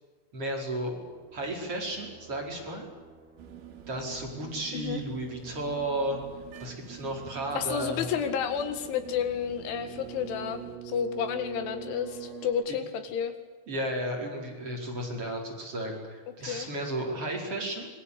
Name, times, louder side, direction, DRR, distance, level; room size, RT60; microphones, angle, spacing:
voice 1, 0.3-1.0 1.3-2.9 3.9-6.2 6.6-8.1 12.7-12.8 13.7-17.9, right 1 dB, 30° right, 0 dB, 5.3 m, -33 dB
Scary alien ship or dark ambience, 0.9-12.5, right 8 dB, 70° right, 6.8 m, -47 dB
sound 1, 3.4-10.8, right 12 dB, 85° right, 4.4 m, -47 dB
voice 2, 7.6-13.3 16.5-16.7, left 8 dB, 85° left, 9 dB, 4.3 m, -31 dB
26.0 x 22.5 x 8.4 m, 1.4 s
omnidirectional pair, 5.3 m